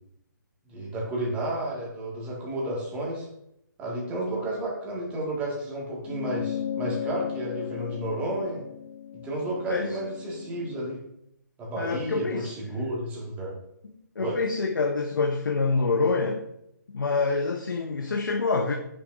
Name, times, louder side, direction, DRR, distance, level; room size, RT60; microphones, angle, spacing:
voice 1, 0.7-3.3 3.8-8.6 9.2-11.0 11.6-13.5 14.2-14.4, right 1 dB, 15° right, -3 dB, 1.9 m, -32 dB
sound 1, 6.1-10.8, left 9 dB, 45° left, 0.6 m, -35 dB
voice 2, 11.8-12.5 14.2-16.4 16.9-18.7, left 4 dB, 75° left, 3 dB, 0.9 m, -26 dB
8.2 x 6.2 x 2.7 m, 0.79 s
hypercardioid pair, 150°, 11 cm